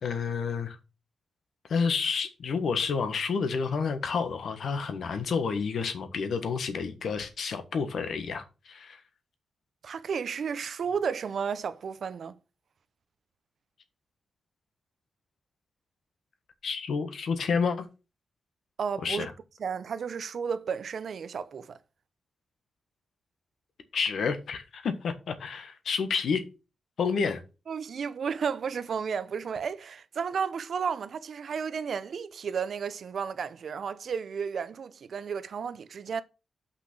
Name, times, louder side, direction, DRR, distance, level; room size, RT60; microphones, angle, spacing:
voice 1, 0.0-0.8 1.7-9.0 16.6-17.9 19.0-19.3 23.9-26.4 27.0-27.4, left 5 dB, 70° left, 1.4 m, -29 dB
voice 2, 9.8-12.4 18.8-19.3 19.6-21.8 27.7-36.2, right 6 dB, 60° right, 0.6 m, -33 dB
5.9 x 5.8 x 6.1 m
wide cardioid pair, 135°, 0 cm